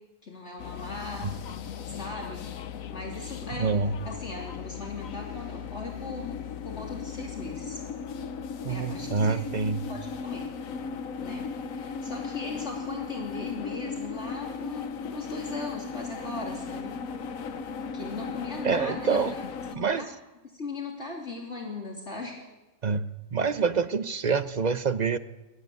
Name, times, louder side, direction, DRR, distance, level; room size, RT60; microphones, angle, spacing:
voice 1, 0.2-1.3 1.9-2.5 2.9-3.8 4.0-7.8 8.6-9.4 9.9-10.5 11.2-17.0 17.9-19.4 19.7-20.1 20.5-22.4, left 3 dB, 55° left, -1 dB, 3.1 m, -38 dB
sound 1, 0.6-19.8, left 6 dB, 80° left, 1.4 m, -37 dB
voice 2, 3.6-3.9 8.6-9.8 18.6-19.3 19.7-20.0 22.8-23.0 23.3-25.2, right 5 dB, 40° right, 12 dB, 0.7 m, -26 dB
21.5 x 13.5 x 9.2 m, 1.1 s
omnidirectional pair, 1.4 m